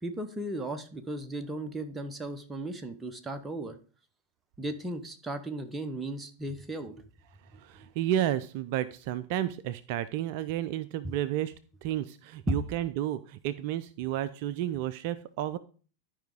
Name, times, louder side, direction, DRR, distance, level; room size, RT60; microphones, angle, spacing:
voice 1, 0.0-3.8 4.6-6.9 7.5-7.9 11.0-11.1 12.5-12.6, right 1 dB, 10° right, 6 dB, 0.8 m, -36 dB
voice 2, 7.6-11.5 11.8-15.6, right 12 dB, 45° right, 14 dB, 0.4 m, -31 dB
12.0 x 5.0 x 3.6 m, 0.39 s
figure-of-eight pair, 90°, 0 cm